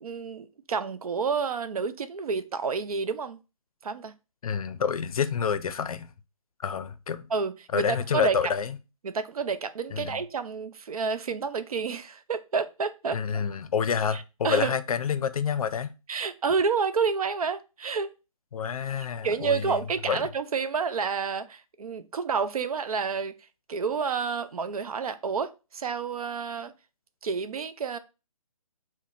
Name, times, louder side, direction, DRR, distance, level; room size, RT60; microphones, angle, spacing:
voice 1, 0.0-3.4 3.8-4.1 7.3-8.4 9.0-13.5 14.1-14.7 16.1-18.1 19.2-23.3 23.7-26.7 27.2-28.0, right 5 dB, 85° right, 0.5 m, -29 dB
voice 2, 4.4-6.1 6.6-7.3 7.7-8.8 9.9-10.2 13.1-15.9 18.5-19.8 20.1-20.2, left 7 dB, 80° left, 0.4 m, -28 dB
5.6 x 2.1 x 2.4 m
hypercardioid pair, 170°, 18 cm